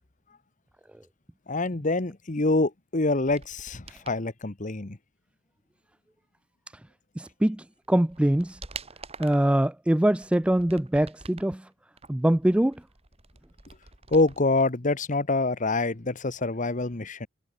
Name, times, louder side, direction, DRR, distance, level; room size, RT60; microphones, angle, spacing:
voice 1, 1.5-5.0 14.1-17.3, left 2 dB, 40° left, 1.2 m, -26 dB
sound 1, 3.2-4.2 7.3-7.4 7.8-9.5 10.1-11.6 12.0-14.6 14.9-15.0, right 4 dB, 30° right, 2.5 m, -46 dB
voice 2, 7.2-8.6 9.2-11.7 12.1-12.8, right 1 dB, 5° right, 0.3 m, -23 dB
head